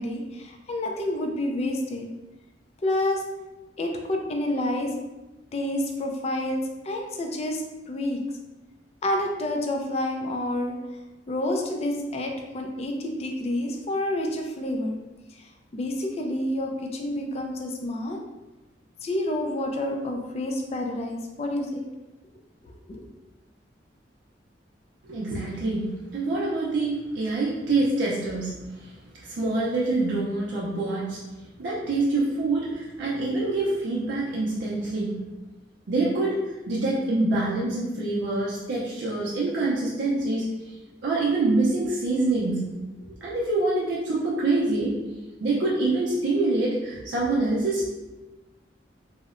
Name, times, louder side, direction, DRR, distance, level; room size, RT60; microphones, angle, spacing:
voice 1, 0.0-2.1 2.8-3.2 3.8-4.9 5.5-8.2 9.0-10.8 11.3-15.0 15.4-18.2 19.0-21.9 22.6-23.1, left 1 dB, 35° left, 2 dB, 0.3 m, -29 dB
voice 2, 25.0-29.0 29.2-31.2 31.6-35.3 35.9-40.7 41.0-42.7 43.0-45.0 45.4-47.9, right 2 dB, 75° right, -6 dB, 0.5 m, -26 dB
2.8 x 2.0 x 2.4 m, 1.1 s
head